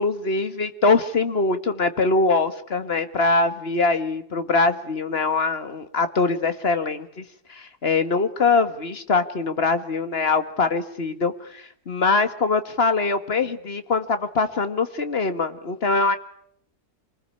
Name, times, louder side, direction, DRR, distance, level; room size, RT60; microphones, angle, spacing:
voice 1, 0.0-7.2 7.5-16.2, left 3 dB, 40° left, 10 dB, 1.8 m, -23 dB
26.5 x 20.5 x 9.8 m, 0.67 s
omnidirectional pair, 1.6 m